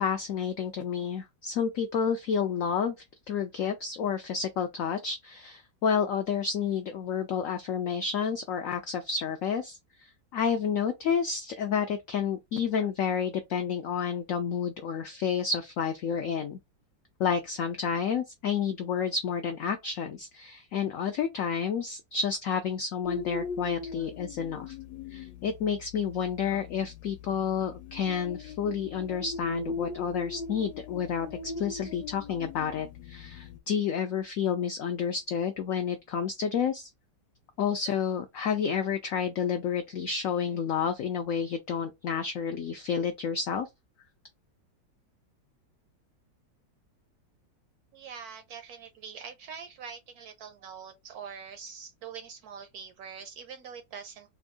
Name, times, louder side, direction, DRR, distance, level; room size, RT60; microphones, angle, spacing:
voice 1, 0.0-3.0 3.3-16.6 17.2-24.8 25.1-36.9 37.6-43.7, left 7 dB, 85° left, 0.7 m, -30 dB
sound 1, 23.0-33.6, left 4 dB, 70° left, 1.1 m, -40 dB
voice 2, 47.9-54.3, right 6 dB, 70° right, 0.9 m, -44 dB
3.5 x 2.5 x 3.4 m
omnidirectional pair, 2.0 m